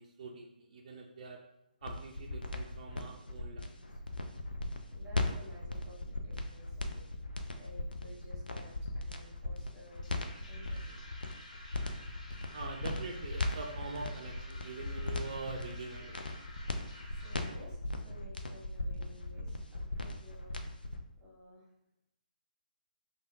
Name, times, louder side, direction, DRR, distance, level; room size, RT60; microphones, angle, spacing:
voice 1, 0.0-1.4 1.8-3.7 12.5-16.2, right 4 dB, 50° right, 0 dB, 0.4 m, -44 dB
sound 1, 1.8-21.0, left 2 dB, 80° left, 0.4 m, -38 dB
voice 2, 4.9-11.0 17.1-17.8 18.0-20.6 20.9-21.7, left 1 dB, 10° right, -5 dB, 1.1 m, -55 dB
sound 2, 9.9-17.5, left 1 dB, 55° left, 0.7 m, -53 dB
3.3 x 2.2 x 2.6 m, 0.83 s
figure-of-eight pair, 135°, 5 cm